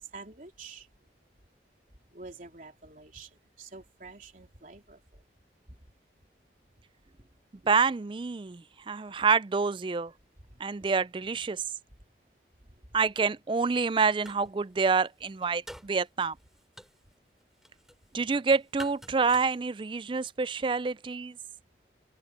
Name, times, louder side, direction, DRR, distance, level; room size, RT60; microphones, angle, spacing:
voice 1, 0.1-0.9 2.1-5.2 10.5-10.6 12.7-12.8, right 3 dB, 45° right, 3.6 m, -48 dB
voice 2, 7.7-10.1 10.6-11.6 12.9-16.3 18.1-21.4, right 5 dB, 30° right, 0.4 m, -27 dB
sound 1, 13.8-14.6 14.8-20.2, equal, ahead, 6.7 m, -49 dB
open air
head